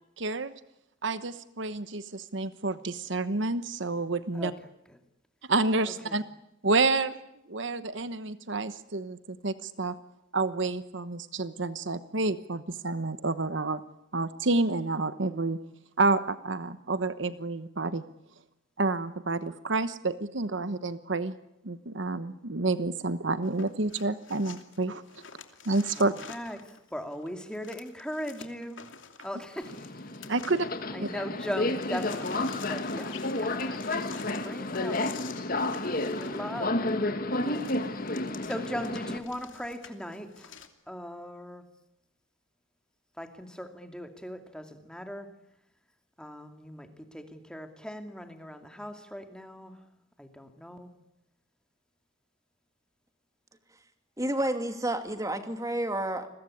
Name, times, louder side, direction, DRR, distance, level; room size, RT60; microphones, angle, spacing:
voice 1, 0.2-0.5 1.0-4.5 5.5-6.2 6.6-7.2 7.5-9.9 10.3-13.8 14.1-15.6 16.0-18.0 18.8-21.3 21.6-25.0 25.6-26.1 30.3-30.7 31.0-31.1, right 3 dB, 60° right, 12 dB, 1.1 m, -29 dB
voice 2, 5.8-6.2 26.0-28.8 29.2-29.9 30.9-35.0 36.1-37.7 38.4-40.5 40.9-41.6 43.2-45.3 46.2-49.8 50.2-50.9, equal, 5° left, 6 dB, 2.6 m, -39 dB
sound 1, 23.4-31.2 31.4-40.7, left 6 dB, 65° left, 2.8 m, -48 dB
Subway metro underground, 29.6-39.2, left 2 dB, 45° left, 2.1 m, -31 dB
voice 3, 54.2-56.3, right 1 dB, 15° right, 7 dB, 2.7 m, -30 dB
30.0 x 22.0 x 8.7 m, 0.84 s
head